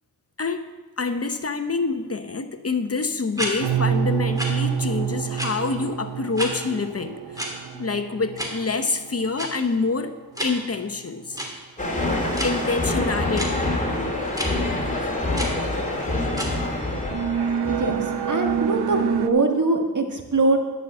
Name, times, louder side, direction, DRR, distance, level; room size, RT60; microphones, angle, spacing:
voice 1, 0.4-0.7 1.0-7.5 7.7-11.4 12.4-13.7, left 4 dB, 40° left, 9 dB, 0.8 m, -27 dB
sound 1, 3.3-3.5 4.4-4.5 5.3-5.5 6.3-6.5 7.3-7.5 8.3-8.5 9.4-9.5 10.3-10.5 11.3-11.5 12.3-12.5 13.4-13.5 14.3-14.5 15.4-15.5 16.3-16.5, equal, 10° right, 2.6 m, -28 dB
sound 2, 3.6-10.1 10.8-11.0 17.0-19.3, right 8 dB, 90° right, 0.6 m, -27 dB
sound 3, 11.8-18.9, left 2 dB, 20° left, 2.4 m, -26 dB
voice 2, 18.3-20.6, right 3 dB, 50° right, 3 dB, 1.7 m, -22 dB
11.5 x 5.8 x 7.5 m, 1.3 s
cardioid pair, 45°, 38 cm